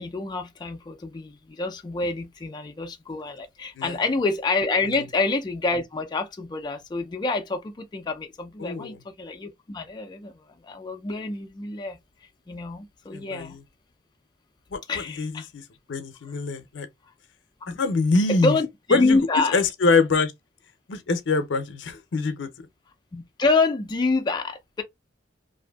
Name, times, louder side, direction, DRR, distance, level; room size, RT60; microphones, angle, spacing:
voice 1, 0.0-10.3 10.6-12.0 12.5-13.6 14.9-15.5 17.7-17.8 18.3-19.6 23.1-24.8, left 3 dB, 25° left, 0.3 m, -27 dB
voice 2, 8.6-9.0 13.1-13.6 14.7-15.6 15.9-16.9 17.8-18.6 18.9-19.2 19.5-20.3 20.9-22.5, left 3 dB, 80° left, 0.5 m, -24 dB
2.6 x 2.4 x 2.2 m
head